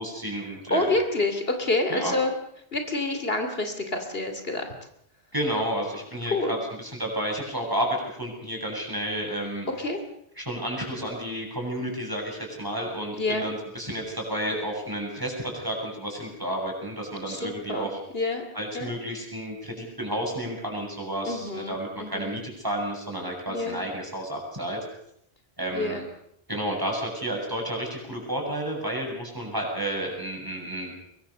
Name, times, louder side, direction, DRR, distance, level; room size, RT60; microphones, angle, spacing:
voice 1, 0.0-0.9 1.9-2.2 5.3-9.7 10.4-18.0 18.5-24.8 25.6-26.0 26.5-30.9, right 1 dB, 20° right, 0 dB, 7.9 m, -31 dB
voice 2, 0.7-2.3 2.7-4.7 6.3-6.6 9.8-10.0 13.1-13.4 17.3-17.9 18.1-18.4 18.7-18.9 21.2-22.4 23.5-23.8 25.7-26.0, left 2 dB, 65° left, 6 dB, 3.0 m, -27 dB
24.0 x 22.5 x 6.7 m, 0.71 s
omnidirectional pair, 1.1 m